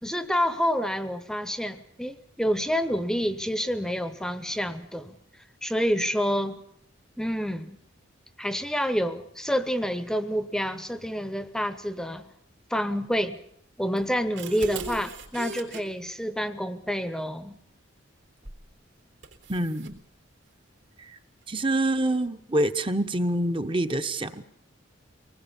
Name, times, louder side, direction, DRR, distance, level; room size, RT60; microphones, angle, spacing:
voice 1, 0.0-5.2 5.6-6.6 7.2-7.8 8.4-12.2 12.7-13.4 13.8-17.6, equal, 5° left, 12 dB, 1.0 m, -28 dB
sound 1, 14.0-15.8 18.4-18.7 19.2-20.0, right 3 dB, 70° right, 3.6 m, -38 dB
voice 2, 19.5-20.0 21.0-21.1 21.5-24.4, right 1 dB, 25° right, 9 dB, 1.1 m, -26 dB
24.5 x 20.0 x 7.2 m, 0.67 s
head